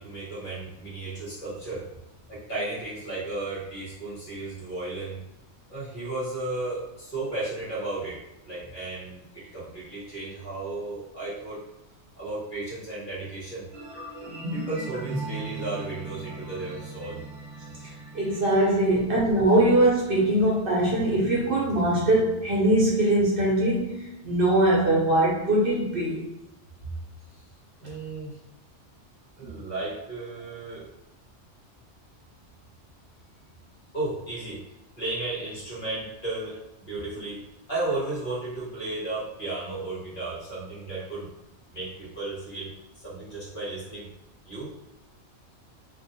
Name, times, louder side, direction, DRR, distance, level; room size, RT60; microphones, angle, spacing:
voice 1, 0.0-1.9 2.3-5.2 5.7-11.6 12.2-13.7 14.5-17.2 27.8-28.4 29.4-30.9 33.9-34.6 35.0-37.4 37.7-41.3 41.7-42.7 43.0-44.1 44.4-44.7, right 2 dB, 45° left, -8 dB, 1.4 m, -34 dB
sound 1, 13.7-20.8, right 2 dB, 20° left, 1.3 m, -38 dB
voice 2, 18.1-24.0 24.2-26.3, right 1 dB, 55° right, -4 dB, 0.8 m, -22 dB
2.6 x 2.6 x 2.7 m, 0.91 s
omnidirectional pair, 1.2 m